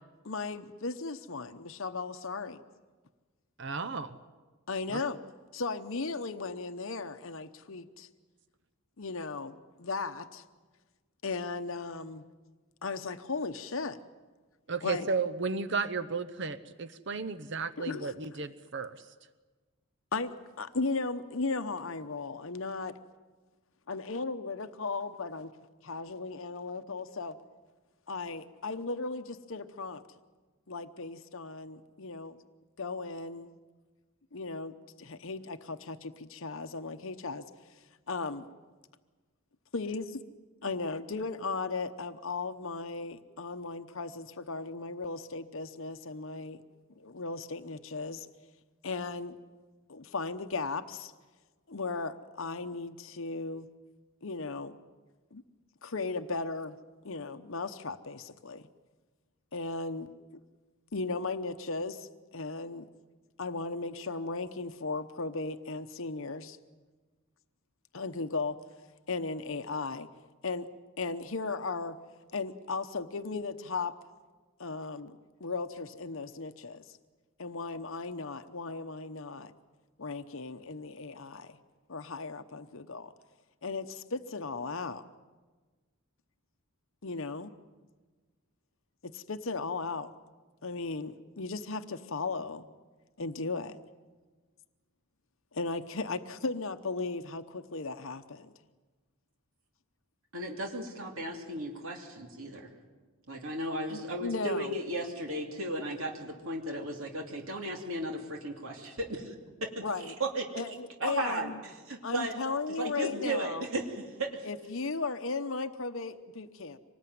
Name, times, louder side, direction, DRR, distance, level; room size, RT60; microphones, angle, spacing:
voice 1, 0.2-2.6 4.7-5.2 5.5-8.1 9.0-10.4 11.2-12.2 12.8-14.0 14.8-15.1 17.8-18.2 20.1-23.0 23.9-25.5 25.8-27.4 28.1-30.0 30.7-32.4 32.8-33.6 34.3-38.5 39.7-40.1 40.6-46.6 47.0-48.3 48.8-49.4 49.9-51.1 51.7-53.7 54.2-54.7 55.3-55.4 55.8-56.8 57.0-58.6 59.5-60.1 60.9-62.9 63.4-66.6 67.9-68.6 69.1-70.1 70.4-70.7 71.0-72.0 72.3-73.9 74.6-77.0 77.4-79.5 80.0-81.6 81.9-83.1 83.6-85.0 87.0-87.5 89.0-90.1 90.6-92.7 93.2-93.8 95.5-98.5 103.9-104.7 109.8-110.1 110.5-111.6 112.0-113.7 114.4-116.8, left 3 dB, 65° left, 9 dB, 0.9 m, -36 dB
voice 2, 3.6-4.2 14.7-19.0, right 4 dB, 55° right, 11 dB, 0.8 m, -34 dB
voice 3, 100.3-102.7 103.3-109.2 110.2-110.4 111.0-111.5 111.9-112.3 112.8-114.5, right 1 dB, 70° right, 2 dB, 2.8 m, -35 dB
25.0 x 20.0 x 9.4 m, 1.3 s
head